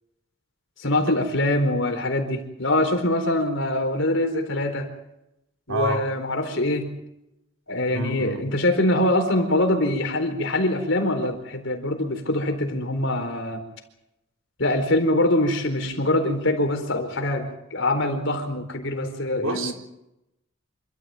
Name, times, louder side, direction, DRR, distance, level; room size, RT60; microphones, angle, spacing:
voice 1, 0.8-4.9 5.7-6.9 7.7-13.6 14.6-19.7, left 1 dB, 60° left, 6 dB, 4.4 m, -24 dB
voice 2, 5.7-6.0 7.9-8.4 19.4-19.7, right 2 dB, 65° right, 5 dB, 4.1 m, -28 dB
27.0 x 14.5 x 9.1 m, 0.86 s
head